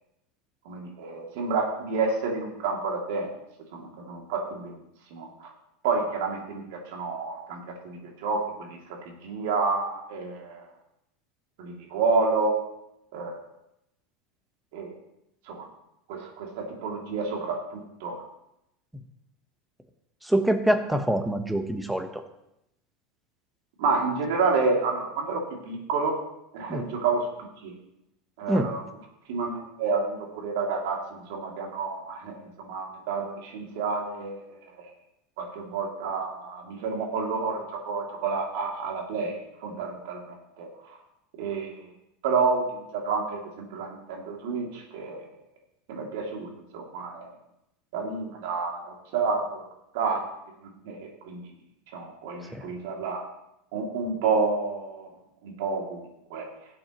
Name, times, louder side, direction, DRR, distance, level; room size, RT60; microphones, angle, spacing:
voice 1, 0.6-3.3 3.7-4.8 5.1-5.5 5.8-10.7 11.6-12.6 13.1-13.4 14.7-15.0 15.5-15.7 16.1-18.2 23.8-26.2 26.5-27.3 27.6-27.7 28.4-28.8 29.3-34.4 34.8-34.9 35.4-41.0 41.4-41.9 42.2-45.3 45.9-47.3 47.9-49.6 49.9-50.2 50.6-51.4 51.9-53.3 53.7-55.1 55.4-56.5, right 4 dB, 75° right, 0 dB, 2.6 m, -29 dB
voice 2, 20.2-22.2 26.7-26.9 28.5-28.7 52.5-52.7, right 1 dB, 5° right, 6 dB, 1.1 m, -25 dB
17.5 x 7.7 x 3.0 m, 0.83 s
supercardioid pair, 140°, 0 cm